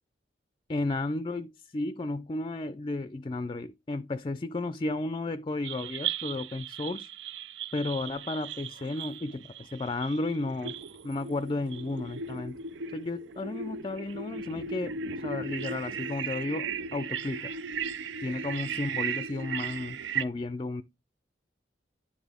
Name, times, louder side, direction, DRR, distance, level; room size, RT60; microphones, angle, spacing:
voice 1, 0.7-7.1 7.7-10.8 11.0-12.6 12.9-17.5 18.2-20.8, left 2 dB, 25° left, 0.3 m, -33 dB
sound 1, 5.6-20.2, right 6 dB, 75° right, 0.5 m, -37 dB
10.0 x 4.2 x 3.5 m
head